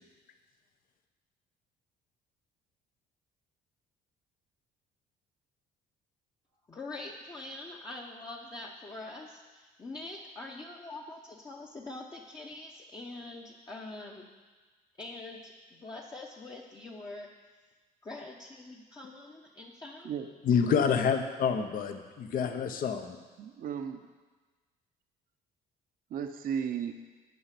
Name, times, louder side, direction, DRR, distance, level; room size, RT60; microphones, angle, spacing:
voice 1, 6.7-14.3 15.0-15.5 15.8-17.3 18.0-20.1, left 2 dB, 25° left, -2 dB, 0.9 m, -44 dB
voice 2, 20.5-23.2, left 6 dB, 55° left, 6 dB, 0.9 m, -27 dB
voice 3, 23.4-24.1 26.1-26.9, right 8 dB, 55° right, 7 dB, 0.8 m, -34 dB
9.5 x 5.7 x 8.2 m, 1.3 s
cardioid pair, 110°, 17 cm